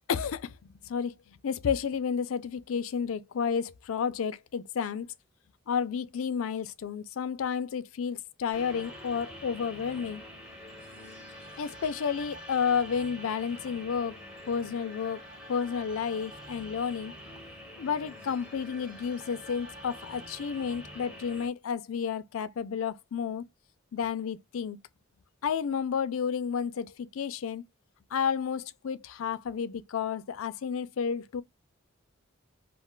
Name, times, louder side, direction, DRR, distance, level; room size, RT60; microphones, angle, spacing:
voice 1, 0.1-0.6 0.8-5.1 5.7-10.2 11.6-14.2 14.5-15.2 15.5-17.1 17.8-23.4 23.9-24.8 25.4-27.6 28.1-31.4, left 7 dB, 80° left, 0.4 m, -31 dB
sound 1, 8.5-21.5, equal, 5° right, 0.8 m, -46 dB
2.3 x 2.2 x 3.6 m
head